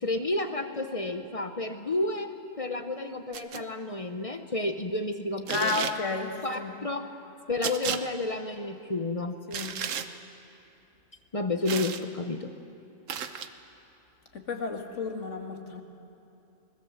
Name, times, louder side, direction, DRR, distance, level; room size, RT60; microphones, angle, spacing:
voice 1, 0.0-5.9 6.4-7.1 7.5-9.4 11.3-12.5, left 2 dB, 30° left, 7 dB, 0.9 m, -31 dB
sound 1, 3.3-3.6 5.5-6.0 7.6-8.0 9.5-10.1 11.7-12.0 13.1-13.5, right 8 dB, 85° right, 1.3 m, -33 dB
voice 2, 5.5-6.7 9.5-9.8 14.3-15.8, left 4 dB, 75° left, 3 dB, 2.1 m, -32 dB
21.5 x 20.5 x 7.2 m, 2.8 s
omnidirectional pair, 1.3 m